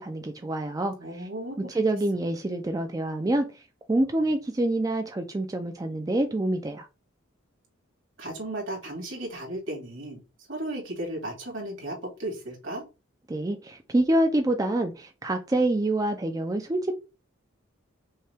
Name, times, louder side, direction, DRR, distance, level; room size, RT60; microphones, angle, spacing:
voice 1, 0.0-1.3 1.7-6.9 13.3-17.0, right 1 dB, 15° right, 0.3 m, -26 dB
voice 2, 1.0-1.8 8.2-10.2 10.5-12.8, right 1 dB, 65° right, 2.1 m, -35 dB
5.5 x 2.2 x 3.3 m
head